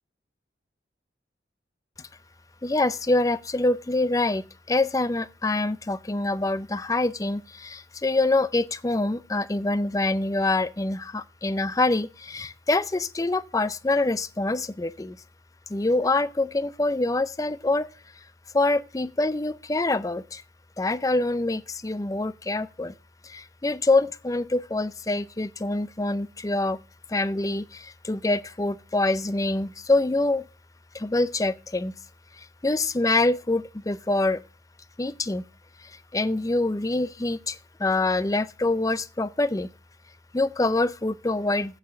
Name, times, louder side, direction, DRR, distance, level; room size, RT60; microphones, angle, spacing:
voice 1, 2.6-15.2 15.7-17.9 18.5-20.4 20.8-22.9 23.2-26.8 27.1-30.5 30.9-31.9 32.4-34.4 35.0-35.4 35.8-39.7 40.3-41.8, left 2 dB, 20° left, 0.5 m, -25 dB
8.9 x 5.6 x 7.0 m
head